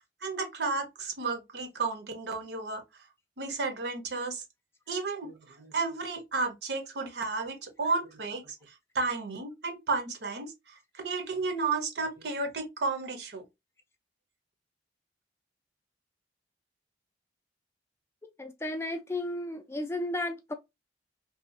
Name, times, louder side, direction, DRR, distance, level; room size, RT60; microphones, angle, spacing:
voice 1, 0.2-3.0 3.4-4.4 4.9-13.5, right 3 dB, 70° right, 0.7 m, -33 dB
voice 2, 18.4-20.5, left 1 dB, 15° left, 0.3 m, -33 dB
2.7 x 2.3 x 2.5 m
head